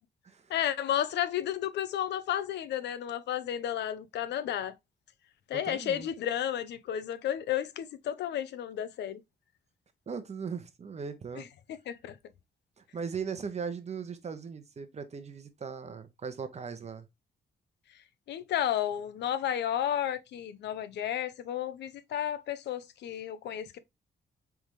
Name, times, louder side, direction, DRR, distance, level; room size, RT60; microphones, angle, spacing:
voice 1, 0.5-4.7 5.5-9.2 11.4-11.5 11.7-12.2 18.3-23.8, left 10 dB, 85° left, 0.6 m, -32 dB
voice 2, 5.5-6.1 10.1-11.5 12.8-17.1, right 6 dB, 40° right, 0.8 m, -38 dB
4.0 x 3.5 x 3.1 m
cardioid pair, 95°, 17 cm